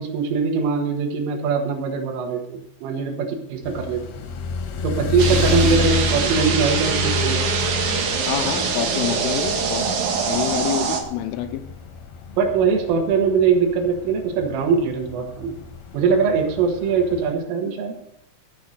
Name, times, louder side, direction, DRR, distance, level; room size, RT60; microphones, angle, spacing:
voice 1, 0.0-4.2 4.8-7.5 12.4-15.6 15.9-18.0, right 5 dB, 85° right, 1 dB, 4.2 m, -22 dB
sound 1, 3.6-17.3, left 4 dB, 65° left, 2.9 m, -30 dB
sound 2, 5.2-11.0, right 5 dB, 60° right, 2.1 m, -23 dB
voice 2, 8.3-9.9 10.3-11.7, left 11 dB, 85° left, 6 dB, 3.3 m, -27 dB
14.5 x 7.1 x 6.7 m, 0.78 s
omnidirectional pair, 5.6 m